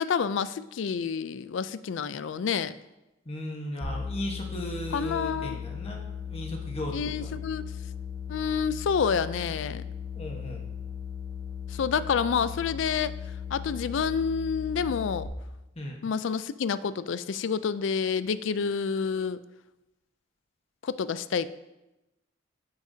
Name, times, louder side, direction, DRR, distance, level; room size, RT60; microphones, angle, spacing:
voice 1, 0.0-2.7 4.9-5.6 6.9-7.7 8.3-9.8 11.7-13.2 13.5-15.3 16.0-19.4 20.8-21.5, left 6 dB, 75° left, 15 dB, 0.4 m, -28 dB
voice 2, 3.2-7.3 10.1-10.7 15.7-16.0, left 1 dB, 30° left, 1 dB, 1.2 m, -36 dB
sound 1, 3.8-15.3, left 7 dB, 40° right, 1.9 m, -37 dB
9.9 x 8.0 x 2.7 m, 0.99 s
head